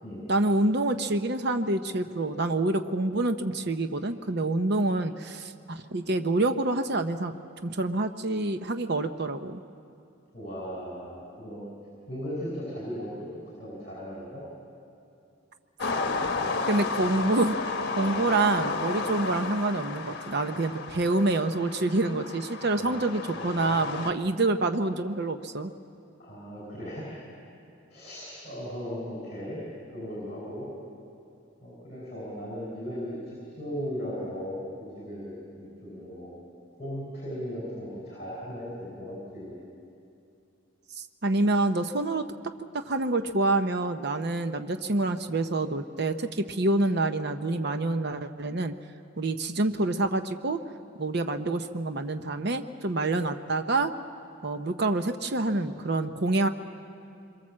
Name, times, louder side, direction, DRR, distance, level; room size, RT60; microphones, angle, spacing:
voice 1, 0.3-7.3 7.6-9.6 16.7-25.7 41.2-42.2 42.7-48.7 49.2-50.6 51.0-53.9 54.4-56.5, right 2 dB, 50° right, 8 dB, 0.8 m, -27 dB
voice 2, 10.3-11.6 12.1-14.4 22.8-23.8 26.2-27.1 27.9-29.6 29.9-30.7 31.6-34.7 35.0-36.3 36.8-39.6, equal, 30° left, -5 dB, 5.8 m, -37 dB
sound 1, 15.8-24.1, left 3 dB, 50° left, 1.4 m, -32 dB
26.0 x 23.0 x 7.5 m, 2.6 s
head